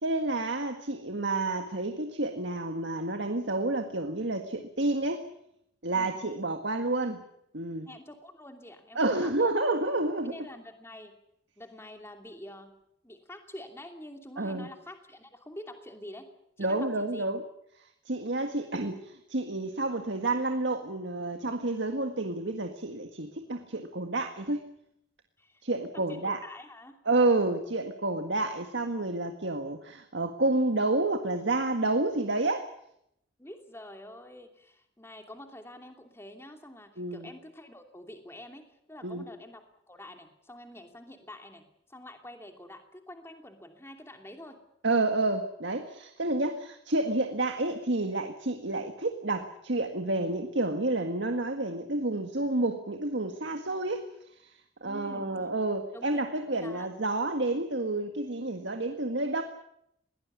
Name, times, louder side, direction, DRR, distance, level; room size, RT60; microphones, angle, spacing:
voice 1, 0.0-5.2 5.8-7.2 7.5-7.9 9.0-10.4 14.4-14.7 16.6-17.4 18.1-24.7 25.6-26.4 27.1-32.7 37.0-37.3 39.0-39.3 44.8-54.1 54.4-54.5 54.8-59.4, right 2 dB, 65° right, 6 dB, 1.8 m, -29 dB
voice 2, 7.8-9.5 10.2-11.1 11.6-12.7 13.0-16.3 16.6-17.3 25.4-25.6 25.9-27.0 33.4-41.6 41.9-44.6 54.8-55.3 55.9-56.9, left 1 dB, 10° left, 5 dB, 2.8 m, -47 dB
21.5 x 18.5 x 9.6 m, 0.76 s
head